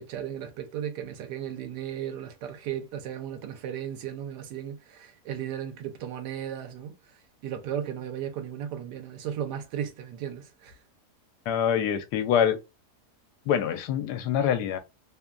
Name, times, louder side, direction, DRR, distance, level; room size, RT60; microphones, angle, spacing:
voice 1, 0.0-10.8, right 9 dB, 80° right, 1.3 m, -35 dB
voice 2, 11.5-12.6 13.5-14.8, left 8 dB, 80° left, 1.1 m, -25 dB
3.0 x 2.2 x 2.3 m
omnidirectional pair, 1.8 m